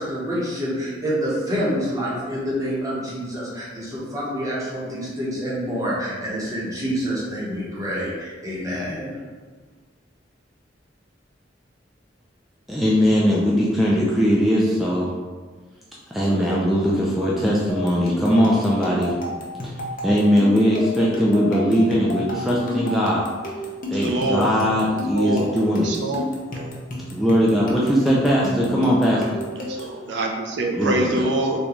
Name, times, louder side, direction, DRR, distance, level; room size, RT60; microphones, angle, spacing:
voice 1, 0.0-9.2, equal, 20° right, -7 dB, 0.9 m, -27 dB
voice 2, 12.7-15.1 16.1-19.1 19.6-19.7 20.0-23.2 23.9-25.9 27.1-29.4 30.7-31.3, equal, ahead, -6 dB, 0.3 m, -20 dB
sound 1, 17.7-30.0, left 1 dB, 50° left, 0.6 m, -32 dB
voice 3, 24.0-24.4 25.1-25.5 25.8-26.2 26.5-26.7 29.7-31.6, right 2 dB, 70° right, 2 dB, 0.4 m, -25 dB
3.8 x 2.2 x 3.0 m, 1.4 s
head